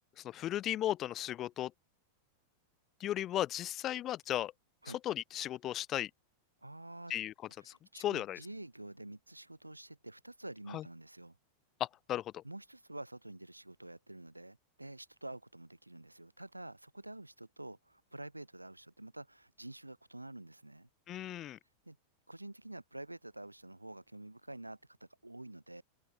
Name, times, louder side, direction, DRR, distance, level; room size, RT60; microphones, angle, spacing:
voice 1, 0.2-1.7 3.0-4.5 5.0-6.1 7.1-7.3 7.6-7.7 8.0-8.4 10.7-10.8 11.8-12.4 21.1-21.6, left 13 dB, 30° left, 3.3 m, -35 dB
voice 2, 6.6-7.1 7.6-11.4 12.4-20.9 21.8-22.0 22.3-25.8, right 1 dB, 85° right, 6.3 m, -48 dB
open air
figure-of-eight pair, 90°, 0 cm